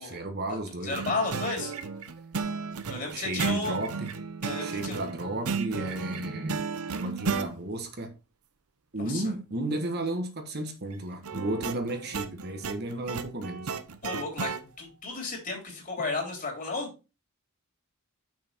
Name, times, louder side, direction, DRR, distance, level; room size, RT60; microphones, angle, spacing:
voice 1, 0.0-1.1 3.1-4.1 4.6-6.7 7.0-8.1 8.9-13.7, right 1 dB, 45° right, 1.3 m, -33 dB
voice 2, 0.7-1.7 2.9-3.8 4.4-5.0 9.0-9.3 14.0-16.9, left 3 dB, 40° left, 3.4 m, -33 dB
sound 1, 0.9-7.5 11.2-14.6, right 5 dB, 80° right, 0.8 m, -34 dB
6.7 x 6.2 x 4.4 m
head